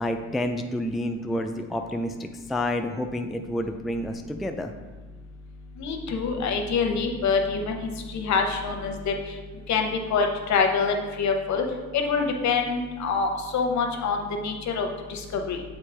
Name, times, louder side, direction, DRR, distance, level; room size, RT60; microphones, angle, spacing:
voice 1, 0.0-4.7, left 1 dB, ahead, 5 dB, 0.3 m, -29 dB
voice 2, 5.8-9.1 9.7-11.6 11.9-15.6, left 5 dB, 65° left, 3 dB, 0.9 m, -26 dB
7.2 x 4.1 x 3.3 m, 1.3 s
cardioid pair, 90°, 30 cm